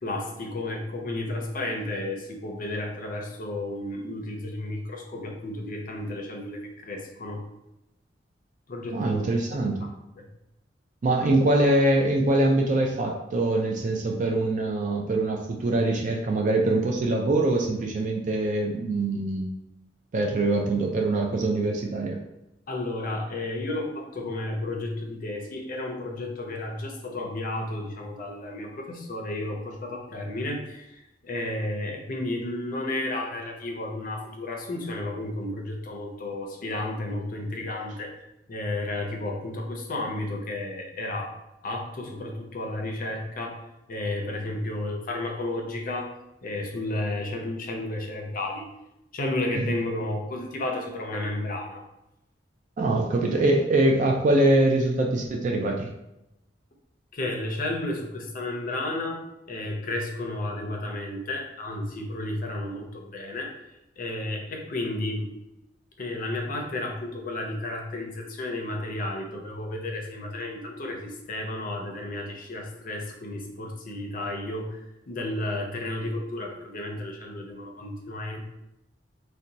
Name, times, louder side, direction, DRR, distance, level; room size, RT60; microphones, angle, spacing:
voice 1, 0.0-7.4 8.7-9.6 10.2-10.3 22.7-38.2 38.5-41.3 41.6-43.6 43.9-46.1 46.4-48.7 49.1-51.8 57.1-59.2 59.5-63.6 64.0-65.3 66.0-78.4, left 2 dB, 50° left, 2 dB, 0.5 m, -32 dB
voice 2, 8.9-9.9 11.0-19.5 20.1-22.2 49.6-49.7 52.8-55.9, right 2 dB, 40° right, 0 dB, 0.3 m, -23 dB
2.6 x 2.2 x 3.9 m, 0.90 s
head